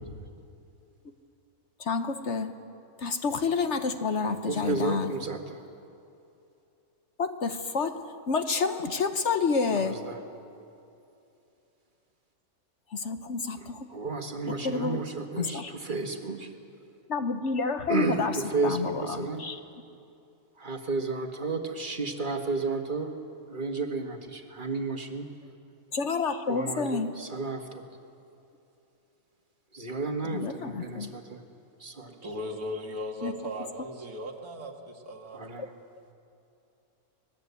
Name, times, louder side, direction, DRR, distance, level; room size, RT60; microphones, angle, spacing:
voice 1, 1.8-2.5 3.0-5.1 7.2-8.0 8.3-10.0 12.9-13.9 14.5-15.0 15.4-15.7 17.1-18.4 18.6-19.6 25.9-27.1 30.2-31.1 33.2-33.3, left 4 dB, 55° left, 8 dB, 1.2 m, -29 dB
voice 2, 4.4-5.6 9.7-10.2 13.6-16.5 17.9-19.4 20.6-23.1 23.5-25.3 26.5-27.8 29.7-31.4 31.8-32.2 35.3-35.7, right 3 dB, 35° right, 4 dB, 1.8 m, -32 dB
voice 3, 32.2-35.4, equal, 75° right, 2 dB, 2.5 m, -37 dB
25.0 x 19.5 x 8.3 m, 2.7 s
omnidirectional pair, 1.6 m